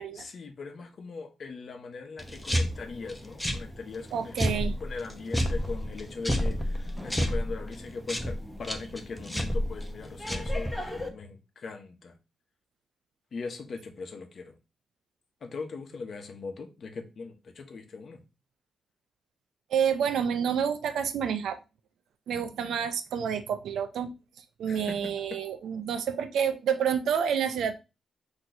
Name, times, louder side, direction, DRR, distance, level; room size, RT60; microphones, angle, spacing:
voice 1, 0.1-12.2 13.3-14.6 15.4-18.2 24.7-25.4, left 4 dB, 55° left, 1.0 m, -40 dB
sound 1, 2.2-11.1, equal, 5° left, 0.9 m, -31 dB
voice 2, 4.1-4.8 19.7-21.6 22.3-24.1 24.6-27.7, right 7 dB, 85° right, 0.5 m, -28 dB
4.0 x 3.0 x 4.4 m
cardioid pair, 100°, 0 cm